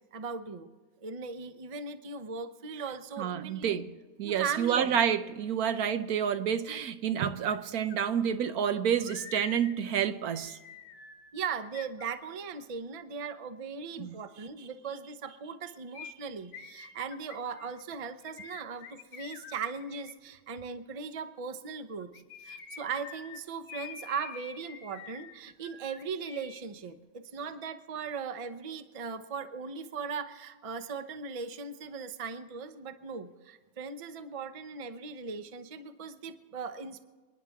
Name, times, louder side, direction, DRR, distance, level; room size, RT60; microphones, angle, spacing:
voice 1, 0.1-0.7 1.0-3.8 4.2-5.0 11.3-22.1 22.4-37.1, right 5 dB, 40° right, 0.4 m, -38 dB
voice 2, 3.2-3.9 4.2-10.6 14.0-14.1, right 8 dB, 65° right, 1.2 m, -29 dB
sound 1, 7.5-7.6 7.9-12.6 15.9-20.2 22.0-26.6 26.9-27.0, left 6 dB, 65° left, 1.4 m, -48 dB
29.0 x 10.5 x 3.6 m
omnidirectional pair, 1.8 m